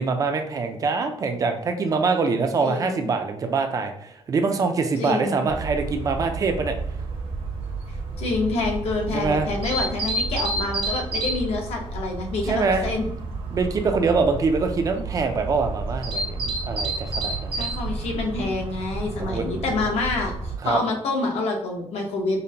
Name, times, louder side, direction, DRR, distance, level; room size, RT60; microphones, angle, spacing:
voice 1, 0.0-6.7 9.1-9.5 12.4-12.9 13.5-17.6 19.2-19.5 20.6-20.8, right 4 dB, 35° right, 5 dB, 0.3 m, -24 dB
voice 2, 2.6-3.1 5.0-5.5 7.9-13.1 17.5-22.4, left 3 dB, 75° left, 1 dB, 0.9 m, -27 dB
sound 1, 5.5-20.5, right 3 dB, 55° right, 0.7 m, -30 dB
5.2 x 2.1 x 2.8 m, 0.71 s
wide cardioid pair, 180°, 11 cm